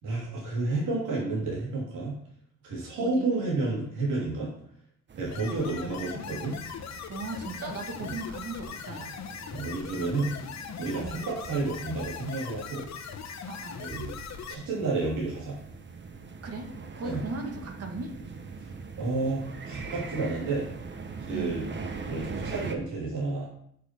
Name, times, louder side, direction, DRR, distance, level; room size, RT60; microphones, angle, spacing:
voice 1, 0.0-2.1 2.6-4.5 5.2-6.6 8.0-8.1 9.5-10.3 10.8-12.9 13.8-14.2 14.5-15.6 17.0-17.2 19.0-20.7 21.2-21.6 22.1-23.5, right 3 dB, 75° right, -4 dB, 3.1 m, -30 dB
voice 2, 3.0-3.3 5.5-6.5 7.1-9.1 10.9-11.2 13.5-13.8 16.4-18.1 21.3-21.7, right 3 dB, 55° right, 3 dB, 1.9 m, -38 dB
sound 1, 5.1-22.7, right 4 dB, 35° right, 1.2 m, -42 dB
sound 2, 5.3-14.5, left 7 dB, 65° left, 1.1 m, -40 dB
6.5 x 6.5 x 5.2 m, 0.66 s
cardioid pair, 90°, 30 cm